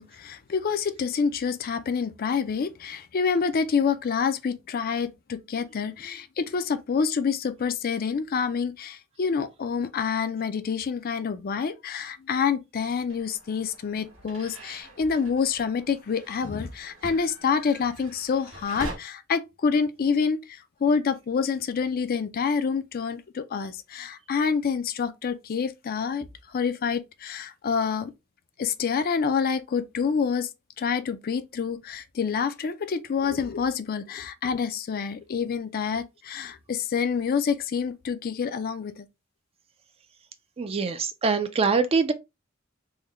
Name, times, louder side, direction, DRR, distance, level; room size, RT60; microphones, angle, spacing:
voice 1, 0.0-28.1 28.6-30.5 30.8-39.1, left 6 dB, 45° left, 0.4 m, -27 dB
sound 1, 13.1-19.0, right 1 dB, 90° right, 1.8 m, -43 dB
voice 2, 40.6-42.1, right 4 dB, 30° right, 0.4 m, -24 dB
3.7 x 2.1 x 3.1 m
head